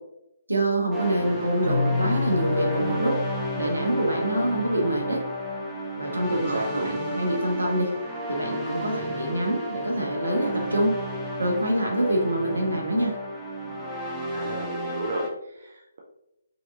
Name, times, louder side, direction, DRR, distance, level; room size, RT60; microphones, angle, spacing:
voice 1, 0.5-3.2 3.6-5.2 6.0-7.9 8.3-10.9 11.4-13.1, right 1 dB, 75° right, 0 dB, 1.1 m, -25 dB
sound 1, 0.9-15.3, equal, ahead, 0.6 m, -32 dB
Keyboard (musical), 1.6-5.3, left 4 dB, 70° left, 0.6 m, -30 dB
voice 2, 6.3-7.0 14.3-16.0, right 1 dB, 45° right, -1 dB, 0.6 m, -33 dB
4.9 x 2.9 x 2.4 m, 0.89 s
figure-of-eight pair, 140°, 0 cm